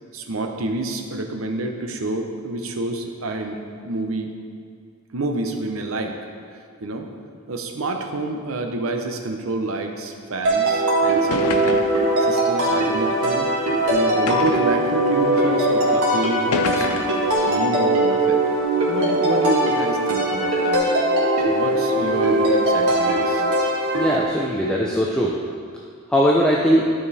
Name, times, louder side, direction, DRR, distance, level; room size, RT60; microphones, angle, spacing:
voice 1, 0.1-4.3 5.1-6.1 6.8-7.1 7.5-11.8 12.2-13.5 13.9-17.1 17.5-18.4 18.9-20.8 21.5-23.5, right 2 dB, 65° right, 4 dB, 0.8 m, -28 dB
sound 1, 10.4-24.2, right 1 dB, 90° right, 2.1 m, -20 dB
sound 2, 10.7-10.8 11.3-12.1 13.0-13.1 14.3-14.8 15.7-15.8 16.5-17.3, left 4 dB, 85° left, 0.6 m, -27 dB
voice 2, 23.9-25.4 26.1-26.9, equal, 5° left, -4 dB, 0.5 m, -19 dB
12.5 x 5.3 x 4.1 m, 2.1 s
head